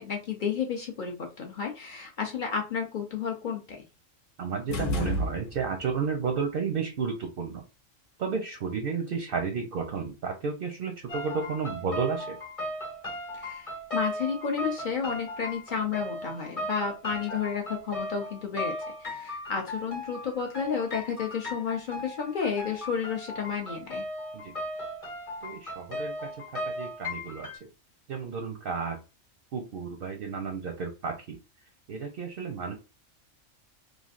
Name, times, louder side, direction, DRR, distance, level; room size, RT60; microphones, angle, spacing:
voice 1, 0.0-3.6 13.3-18.7 19.0-24.0, left 6 dB, 55° left, 2 dB, 0.5 m, -31 dB
voice 2, 4.4-7.6 8.2-12.4 17.3-17.4 24.3-24.5 25.4-27.7 28.1-29.0 29.5-31.4 31.9-32.7, right 5 dB, 60° right, 4 dB, 0.6 m, -32 dB
sound 1, 4.7-5.9, left 1 dB, 75° left, 1.0 m, -31 dB
sound 2, 11.1-27.6, left 1 dB, 30° left, 0.8 m, -37 dB
3.1 x 2.5 x 2.4 m, 0.30 s
omnidirectional pair, 1.4 m